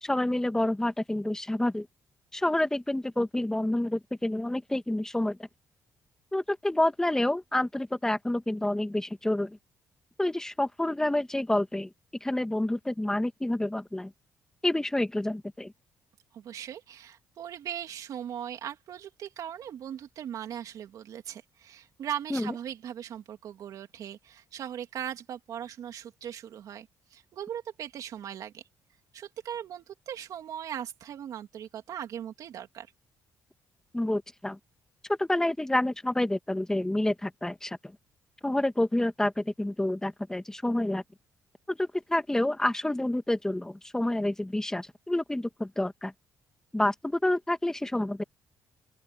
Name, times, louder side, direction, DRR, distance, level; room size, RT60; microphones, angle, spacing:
voice 1, 0.0-1.9 2.3-5.4 6.3-9.6 10.2-11.9 12.2-14.1 14.6-15.7 22.3-22.5 33.9-34.6 35.1-37.8 38.4-41.0 41.7-46.1 46.7-48.2, left 1 dB, 10° left, 2.1 m, -28 dB
voice 2, 16.3-28.6 29.1-32.9, right 10 dB, 65° right, 2.9 m, -39 dB
open air
cardioid pair, 100°, 6 cm